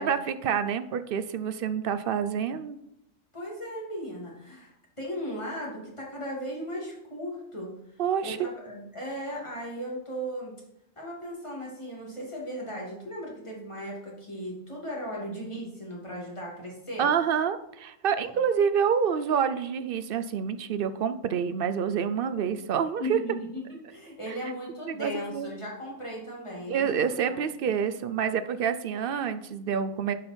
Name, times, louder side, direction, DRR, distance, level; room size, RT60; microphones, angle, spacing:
voice 1, 0.0-2.8 8.0-8.5 17.0-23.2 24.9-25.5 26.7-30.1, right 7 dB, 60° right, 11 dB, 0.6 m, -27 dB
voice 2, 3.3-10.5 11.0-17.1 23.0-27.4, equal, 20° left, -3 dB, 2.7 m, -37 dB
11.0 x 5.3 x 4.4 m, 0.82 s
omnidirectional pair, 1.4 m